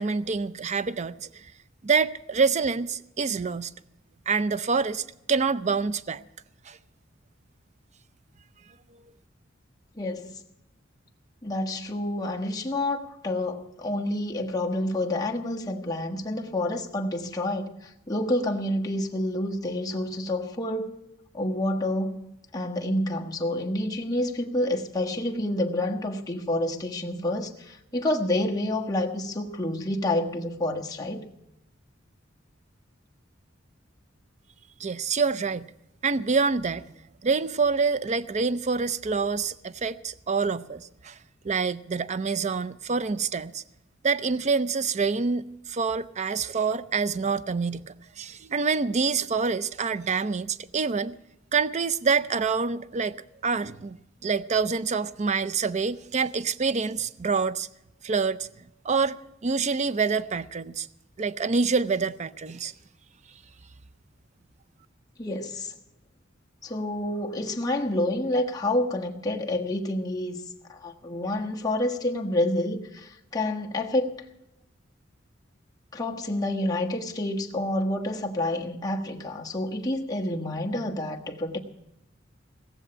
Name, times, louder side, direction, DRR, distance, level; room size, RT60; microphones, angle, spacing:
voice 1, 0.0-1.5 1.8-3.7 4.3-6.2 6.7-6.8 34.8-35.7 36.0-36.8 37.2-41.2 41.4-43.6 44.0-51.2 51.5-53.1 53.4-54.0 54.2-57.7 58.0-58.5 58.8-59.2 59.4-60.9 61.2-62.7, right 5 dB, 35° right, 0.5 m, -26 dB
voice 2, 10.0-10.3 11.4-20.9 21.3-31.3 65.2-65.7 66.6-70.4 70.7-74.1 75.9-81.6, left 1 dB, 20° left, 1.4 m, -28 dB
18.0 x 7.2 x 8.7 m
head